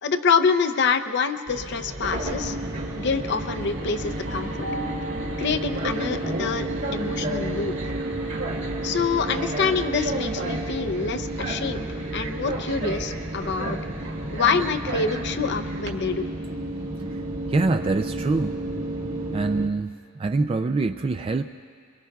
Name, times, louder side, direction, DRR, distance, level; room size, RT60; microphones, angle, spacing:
voice 1, 0.0-2.6 2.9-4.7 5.4-7.7 8.8-11.9 12.1-13.8 14.3-16.2, left 5 dB, 55° left, 9 dB, 0.6 m, -26 dB
Train, 1.5-15.9, right 1 dB, 60° right, 1.9 m, -34 dB
sound 1, 2.2-19.7, right 1 dB, 45° right, 1.5 m, -32 dB
voice 2, 17.5-18.6 19.3-21.4, right 3 dB, 25° right, 7 dB, 0.3 m, -24 dB
25.5 x 22.5 x 2.4 m, 2.3 s
head